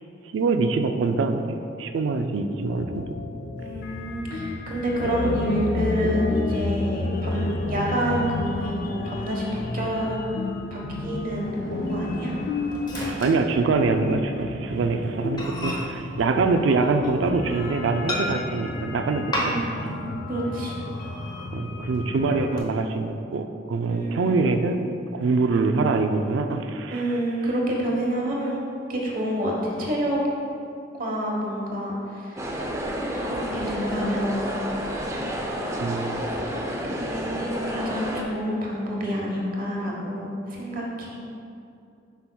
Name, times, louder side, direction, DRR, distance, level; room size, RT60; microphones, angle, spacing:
voice 1, 0.3-3.2 12.9-19.5 19.8-19.9 21.5-24.8 25.1-27.2 35.8-36.2, right 3 dB, 85° right, 7 dB, 0.4 m, -24 dB
sound 1, 2.7-22.6, left 2 dB, 50° left, 0.4 m, -31 dB
voice 2, 3.6-10.1 10.7-12.3 19.3-19.8 20.3-20.7 23.9-24.6 26.9-28.6 28.9-30.2 31.0-32.5 33.3-34.5 36.9-41.2, equal, 50° right, -2 dB, 1.1 m, -28 dB
Microwave oven, 11.3-14.2 14.5-14.7 15.0-15.1 15.4-17.4 18.1-18.7 19.3-19.9 20.2-20.3 20.8-21.5 21.9-22.6, equal, 25° left, 0.9 m, -34 dB
sound 2, 32.4-38.2, equal, 15° right, 0.5 m, -30 dB
7.9 x 5.7 x 2.3 m, 2.6 s
head